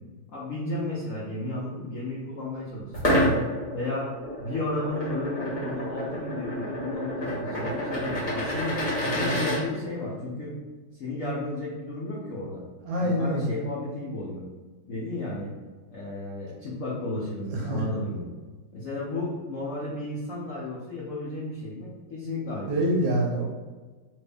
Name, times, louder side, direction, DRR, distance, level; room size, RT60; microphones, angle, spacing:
voice 1, 0.3-2.9 3.7-4.1 4.4-8.8 9.1-10.6 11.0-12.6 13.0-14.4 14.9-15.5 15.9-18.3 18.7-22.7, left 2 dB, 80° left, -6 dB, 0.7 m, -33 dB
sound 1, 2.9-9.6, equal, 35° left, 0.8 m, -28 dB
voice 2, 12.8-13.5 17.7-17.8 22.7-23.4, equal, 70° right, -1 dB, 1.2 m, -25 dB
3.2 x 2.6 x 3.4 m, 1.3 s
omnidirectional pair, 2.2 m